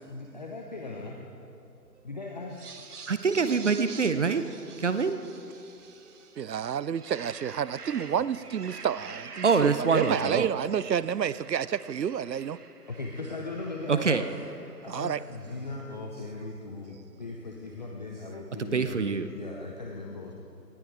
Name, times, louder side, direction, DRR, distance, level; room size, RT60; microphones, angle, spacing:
voice 1, 0.1-1.3 2.0-3.0 12.9-14.3 14.8-20.3, left 3 dB, 25° left, 0 dB, 0.8 m, -38 dB
sound 1, 2.5-6.4 6.8-15.5, right 5 dB, 65° right, 1.4 m, -46 dB
voice 2, 3.1-4.4 4.8-5.2 9.4-10.5 13.9-14.2 18.7-19.3, right 5 dB, 45° right, 10 dB, 0.7 m, -24 dB
voice 3, 6.4-12.6 14.9-15.2, right 8 dB, 85° right, 19 dB, 0.6 m, -30 dB
19.0 x 14.0 x 4.7 m, 2.7 s
figure-of-eight pair, 155°, 49 cm